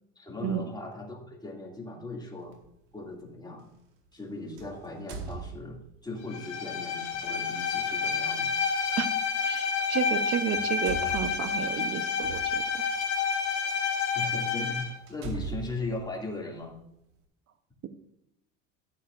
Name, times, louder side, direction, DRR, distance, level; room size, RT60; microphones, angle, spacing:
voice 1, 0.2-2.6 2.9-3.7 4.1-8.5 14.0-16.8, left 2 dB, 10° left, -1 dB, 2.7 m, -38 dB
sound 1, 2.5-2.7 4.6-6.1 7.0-7.2 9.0-9.1 10.1-10.2 10.5-13.1 13.8-13.9 14.4-14.5 15.1-16.9, right 4 dB, 65° right, 2.1 m, -41 dB
Bowed string instrument, 6.3-14.9, left 5 dB, 60° left, 2.0 m, -29 dB
voice 2, 9.4-12.6, right 8 dB, 45° right, 11 dB, 1.0 m, -31 dB
14.0 x 9.8 x 2.6 m, 0.80 s
supercardioid pair, 110°, 34 cm